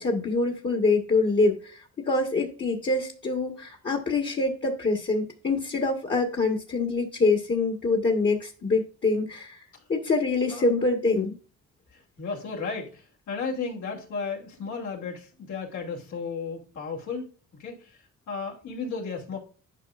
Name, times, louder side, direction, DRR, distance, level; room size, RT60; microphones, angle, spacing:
voice 1, 0.0-9.6 9.9-11.4, left 3 dB, 35° left, 2 dB, 1.5 m, -25 dB
voice 2, 11.9-17.3 17.6-19.4, left 5 dB, 75° left, -2 dB, 2.7 m, -34 dB
11.0 x 4.9 x 2.5 m, 0.37 s
cardioid pair, 90°, 30 cm